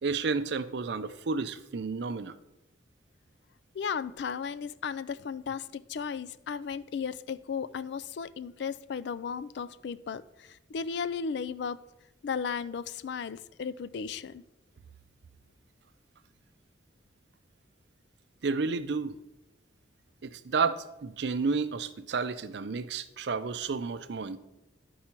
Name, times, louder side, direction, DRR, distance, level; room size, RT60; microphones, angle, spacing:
voice 1, 0.0-2.4 18.4-19.2 20.2-24.4, right 4 dB, 65° right, 0.5 m, -31 dB
voice 2, 3.7-11.8 12.2-14.4, left 6 dB, 65° left, 0.3 m, -35 dB
11.5 x 4.7 x 4.4 m
head